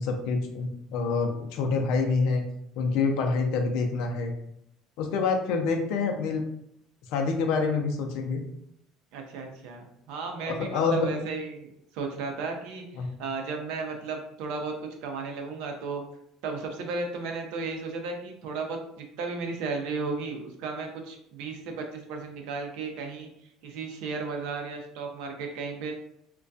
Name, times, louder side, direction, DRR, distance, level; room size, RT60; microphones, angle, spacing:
voice 1, 0.0-2.4 2.8-4.3 5.0-6.4 7.1-8.4 10.5-11.1 13.0-13.1, left 4 dB, 70° left, 3 dB, 0.4 m, -26 dB
voice 2, 9.1-12.8 13.2-16.0 16.4-23.3 23.6-25.9, right 4 dB, 75° right, 3 dB, 0.5 m, -34 dB
2.3 x 2.2 x 2.5 m, 0.75 s
supercardioid pair, 115°, 0 cm